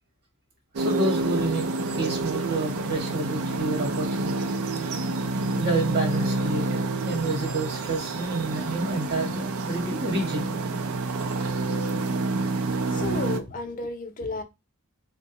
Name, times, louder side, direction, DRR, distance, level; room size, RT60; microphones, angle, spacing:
voice 1, 0.8-4.5 5.5-6.8 7.0-10.5, right 2 dB, 50° right, 1.1 m, -29 dB
sound 1, 0.8-13.4, right 2 dB, 85° right, 0.5 m, -28 dB
voice 2, 12.9-14.4, left 3 dB, 40° left, 0.5 m, -32 dB
3.7 x 2.2 x 2.9 m
head